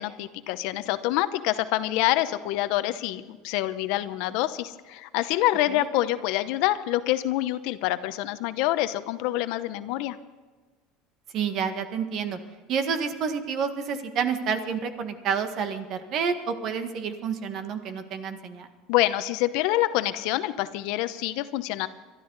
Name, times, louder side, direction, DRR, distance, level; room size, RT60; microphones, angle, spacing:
voice 1, 0.0-10.2 18.9-21.9, left 15 dB, 70° left, 12 dB, 0.8 m, -26 dB
voice 2, 11.3-12.4 12.7-18.7, right 6 dB, 50° right, 8 dB, 1.6 m, -29 dB
22.5 x 12.5 x 4.0 m, 1.4 s
supercardioid pair, 135°, 0 cm